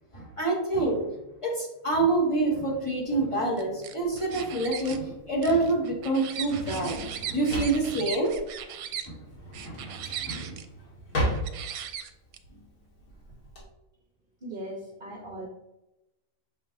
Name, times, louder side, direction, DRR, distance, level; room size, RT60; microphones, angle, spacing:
voice 1, 0.1-1.0 1.4-6.9 7.2-8.3 9.1-9.2 9.6-9.8 10.3-10.6, right 2 dB, 20° left, -6 dB, 2.0 m, -27 dB
sound 1, 3.6-5.0 5.4-9.1 9.5-10.7 11.3-12.4, right 9 dB, 80° right, 1.1 m, -38 dB
Drawer open or close, 4.0-13.6, equal, 85° left, 2.4 m, -35 dB
voice 2, 14.4-15.5, right 1 dB, 40° right, -2 dB, 1.0 m, -38 dB
7.0 x 5.2 x 2.7 m, 0.93 s
omnidirectional pair, 1.6 m